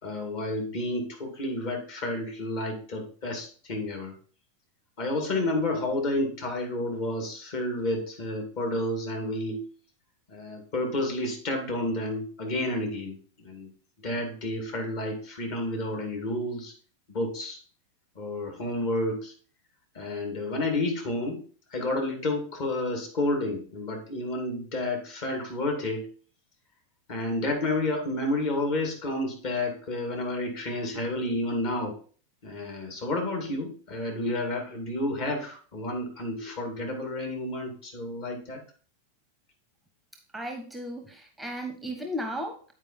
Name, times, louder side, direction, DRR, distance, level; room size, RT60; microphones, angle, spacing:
voice 1, 0.0-4.1 5.0-9.6 10.3-13.2 13.4-13.7 14.0-16.7 17.1-17.6 18.2-19.3 19.9-21.4 21.7-26.1 27.1-32.0 32.4-38.6, left 1 dB, 45° left, 2 dB, 2.4 m, -30 dB
voice 2, 40.3-42.7, equal, ahead, 4 dB, 0.8 m, -35 dB
9.0 x 4.6 x 4.3 m, 0.42 s
figure-of-eight pair, 90°, 0 cm